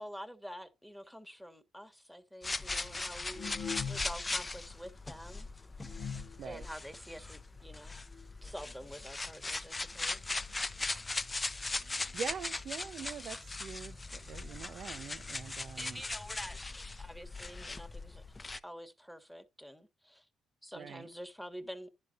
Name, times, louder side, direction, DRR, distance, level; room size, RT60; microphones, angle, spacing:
voice 1, 0.0-3.6 3.9-5.5 6.4-8.0 8.4-10.3 15.8-16.6 17.0-18.2 18.6-20.3 20.6-21.9, equal, ahead, 1.3 m, -47 dB
sound 1, 2.4-18.6, left 3 dB, 20° left, 0.7 m, -39 dB
sound 2, 2.7-4.4 4.7-4.8 5.4-5.5 5.8-6.5 7.2-7.3 7.6-7.7 7.9-8.2 9.0-9.1 9.4-9.5 10.1-10.2 10.5-10.6, left 7 dB, 60° left, 1.0 m, -42 dB
voice 2, 11.6-16.0 20.7-21.1, right 7 dB, 65° right, 0.6 m, -44 dB
11.0 x 4.0 x 5.2 m
cardioid pair, 90°, 0 cm